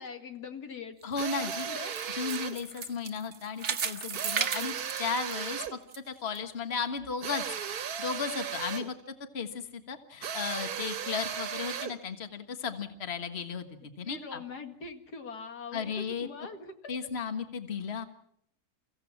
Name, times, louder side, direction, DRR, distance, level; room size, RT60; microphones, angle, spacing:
voice 1, 0.0-1.0 1.4-2.0 14.1-16.8, left 4 dB, 90° left, 6 dB, 2.6 m, -42 dB
voice 2, 1.0-1.7 2.1-4.7 5.0-5.8 6.1-7.4 8.0-9.0 9.3-13.7 14.0-14.4 15.7-16.3 16.9-18.1, left 5 dB, 40° left, 8 dB, 1.7 m, -35 dB
sound 1, 1.0-6.0 6.4-6.5 7.0-7.1, right 7 dB, 50° right, 1.2 m, -35 dB
sound 2, 1.2-2.6 4.1-5.8 7.2-8.9 10.2-12.0, right 8 dB, 75° right, 1.6 m, -36 dB
29.5 x 16.0 x 7.3 m, 0.73 s
omnidirectional pair, 1.7 m